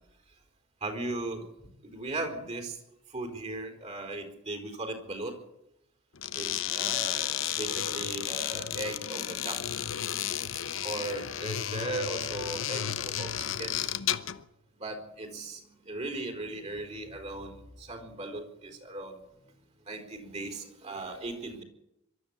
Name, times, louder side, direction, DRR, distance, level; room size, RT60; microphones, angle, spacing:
voice 1, 0.8-1.5 1.8-2.8 3.1-5.4 6.3-7.3 7.6-9.6 10.8-13.9 14.8-19.2 19.9-21.6, right 2 dB, 35° right, 6 dB, 4.3 m, -37 dB
sound 1, 6.2-14.4, left 10 dB, 70° left, 0.9 m, -33 dB
24.0 x 13.0 x 8.8 m, 0.83 s
head